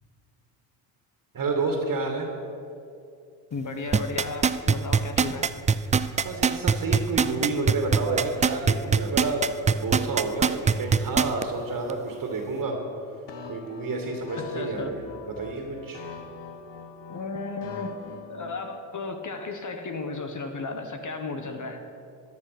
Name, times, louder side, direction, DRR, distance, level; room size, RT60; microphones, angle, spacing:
voice 1, 1.3-2.3 6.2-12.8 13.5-16.0, right 3 dB, 40° right, 2 dB, 2.3 m, -30 dB
voice 2, 3.5-5.5 14.5-14.9 17.1-18.0 18.3-21.8, left 3 dB, 40° left, 6 dB, 1.4 m, -34 dB
sound 1, 3.9-11.4 11.9-12.0, right 6 dB, 15° right, 0.4 m, -21 dB
sound 2, 13.3-18.6, left 5 dB, 65° left, 1.6 m, -42 dB
13.5 x 10.5 x 6.1 m, 2.6 s
supercardioid pair, 75°, 47 cm